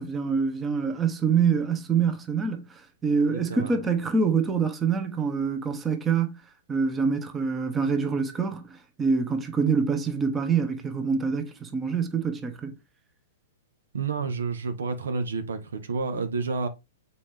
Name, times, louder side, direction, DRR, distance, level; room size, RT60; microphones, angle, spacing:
voice 1, 0.0-6.4 6.7-12.7, right 5 dB, 20° right, 1.3 m, -26 dB
voice 2, 3.2-3.7 13.9-16.7, right 4 dB, 75° right, 1.2 m, -30 dB
7.0 x 4.5 x 3.4 m
hypercardioid pair, 110°, 0 cm